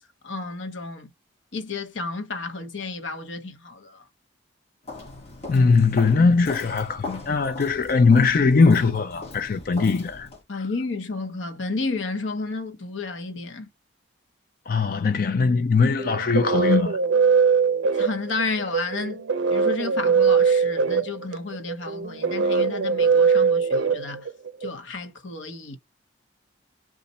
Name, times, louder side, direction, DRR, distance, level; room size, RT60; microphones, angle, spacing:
voice 1, 0.2-1.1 1.5-4.0 10.5-13.7 17.9-19.2 19.5-24.3 24.6-25.8, left 3 dB, 75° left, 0.9 m, -32 dB
Walk footsteps, 4.8-10.4, left 3 dB, 30° left, 1.1 m, -39 dB
voice 2, 5.5-10.6 14.7-17.0, left 4 dB, 50° left, 0.4 m, -20 dB
sound 1, 16.0-24.7, right 5 dB, 70° right, 0.4 m, -21 dB
3.9 x 2.5 x 4.1 m
head